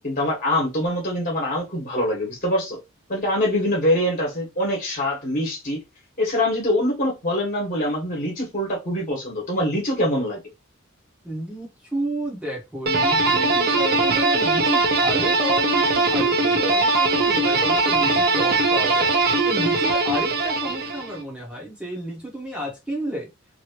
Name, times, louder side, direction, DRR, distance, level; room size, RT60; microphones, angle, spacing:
voice 1, 0.0-2.8 3.1-5.8 6.2-10.4, left 1 dB, 40° left, 1.3 m, -24 dB
voice 2, 11.2-19.1 19.4-23.3, equal, 5° right, 0.9 m, -31 dB
sound 1, 12.9-21.2, right 3 dB, 50° right, 0.6 m, -20 dB
2.9 x 2.6 x 2.9 m
head